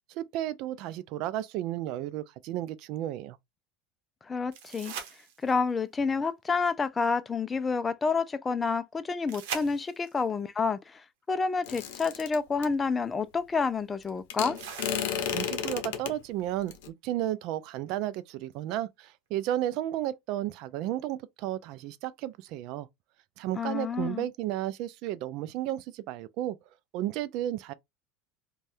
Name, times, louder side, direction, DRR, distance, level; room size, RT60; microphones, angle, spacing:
voice 1, 0.1-3.4 15.3-22.9 23.4-26.6 26.9-27.7, right 13 dB, 60° right, 0.4 m, -33 dB
voice 2, 4.3-4.9 5.4-14.6 23.6-24.2, left 4 dB, 20° left, 0.4 m, -29 dB
sound 1, 4.5-5.8 9.3-10.3 12.2-12.3 14.5-15.6 18.5-18.6, right 7 dB, 80° right, 0.8 m, -41 dB
sound 2, 11.7-12.7 14.3-16.1 16.7-16.9, left 9 dB, 80° left, 0.7 m, -32 dB
2.6 x 2.3 x 3.3 m
supercardioid pair, 125°, 0 cm